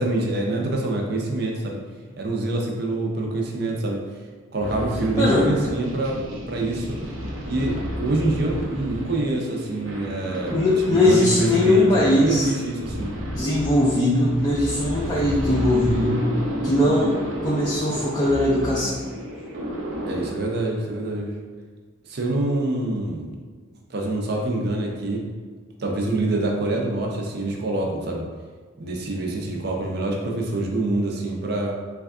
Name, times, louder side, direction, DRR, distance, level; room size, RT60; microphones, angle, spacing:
voice 1, 0.0-1.8 2.2-4.0 4.5-6.2 6.5-7.0 7.5-10.6 10.9-13.1 20.1-21.3 22.1-23.3 23.9-25.2 25.8-28.2 28.8-31.8, right 2 dB, 50° right, 0 dB, 0.5 m, -25 dB
sound 1, 4.6-20.3, equal, 85° right, 0.8 m, -31 dB
voice 2, 5.2-5.5 10.5-12.5 13.3-16.2 16.6-17.1 17.4-19.0, left 1 dB, 20° left, -6 dB, 0.4 m, -20 dB
3.3 x 2.3 x 3.6 m, 1.5 s
head